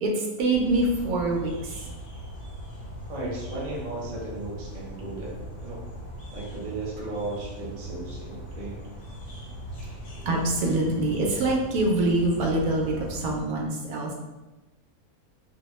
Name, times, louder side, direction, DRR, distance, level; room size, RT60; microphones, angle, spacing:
voice 1, 0.0-1.7 10.2-14.1, right 2 dB, 80° right, -1 dB, 1.1 m, -25 dB
sound 1, 0.5-13.4, equal, 50° left, 0.6 m, -40 dB
voice 2, 3.1-5.4 5.6-5.9 6.3-8.8 9.9-10.0, right 2 dB, 50° right, -5 dB, 0.5 m, -35 dB
2.6 x 2.1 x 2.9 m, 1.1 s
omnidirectional pair, 1.6 m